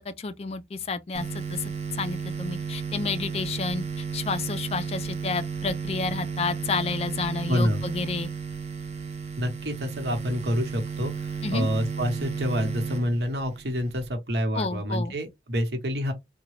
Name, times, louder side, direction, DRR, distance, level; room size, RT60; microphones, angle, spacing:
voice 1, 0.1-1.6 2.0-3.8 4.1-8.3 11.4-11.7 14.5-15.1, left 4 dB, 35° left, 0.4 m, -30 dB
sound 1, 1.1-14.1, right 6 dB, 40° right, 0.7 m, -33 dB
voice 2, 7.5-7.8 9.4-16.1, equal, 70° right, 1.1 m, -27 dB
3.8 x 2.2 x 3.1 m
head